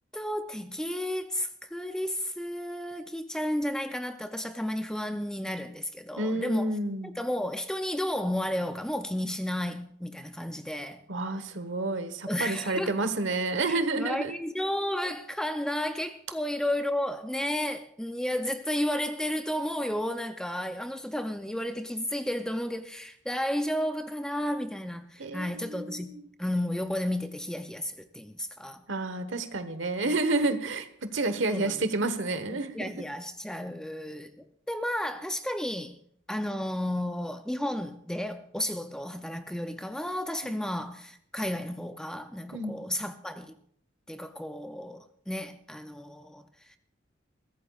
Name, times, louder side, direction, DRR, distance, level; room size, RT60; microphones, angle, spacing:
voice 1, 0.1-6.7 7.2-11.0 12.3-13.0 13.7-26.1 26.4-28.8 30.1-30.2 31.5-31.7 32.5-36.0 36.3-43.6 44.1-46.8, left 1 dB, 5° left, 0.5 m, -32 dB
voice 2, 6.2-7.1 11.1-14.4 25.2-26.2 28.9-32.9 40.4-40.6 42.5-42.8, right 2 dB, 80° right, 1.2 m, -30 dB
22.0 x 15.5 x 2.4 m
head